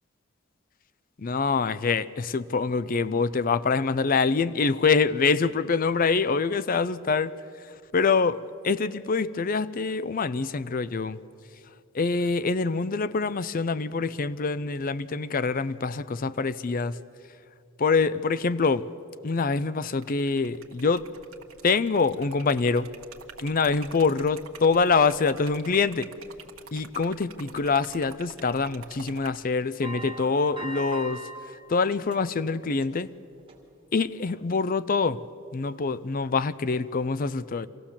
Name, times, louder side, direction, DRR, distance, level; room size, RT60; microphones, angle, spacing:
voice 1, 1.2-7.3 7.9-11.2 11.9-17.0 17.8-18.9 19.2-21.1 21.6-22.9 23.4-26.1 26.7-31.2 31.7-33.1 33.9-35.2 35.5-37.7, left 4 dB, 45° left, 16 dB, 0.5 m, -25 dB
Liquid, 19.9-29.5, right 5 dB, 85° right, 1.5 m, -47 dB
sound 1, 29.8-31.4 31.8-32.4 32.8-33.0 33.5-33.6, right 1 dB, 25° right, 2.4 m, -39 dB
25.0 x 16.0 x 7.3 m, 2.6 s
head